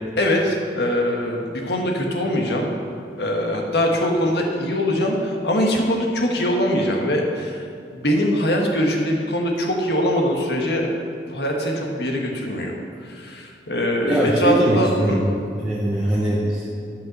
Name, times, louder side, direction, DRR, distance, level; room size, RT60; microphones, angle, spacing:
voice 1, 0.2-2.7 3.2-7.6 7.9-10.9 11.3-12.7 13.0-15.2 16.0-16.1, equal, 70° left, 1 dB, 1.5 m, -22 dB
voice 2, 14.0-15.3 15.6-16.7, right 1 dB, 5° right, -7 dB, 1.0 m, -21 dB
12.0 x 5.6 x 6.6 m, 2.4 s
head